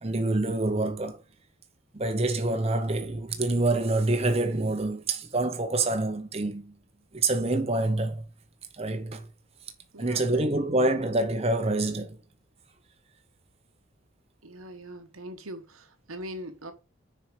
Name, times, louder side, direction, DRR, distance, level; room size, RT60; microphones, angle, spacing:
voice 1, 0.0-1.2 1.9-6.7 7.1-8.3 8.7-9.3 10.0-12.2, right 2 dB, 30° right, 0.8 m, -26 dB
voice 2, 9.9-10.6 14.4-16.7, right 1 dB, 85° right, 1.3 m, -41 dB
6.5 x 4.8 x 4.9 m
head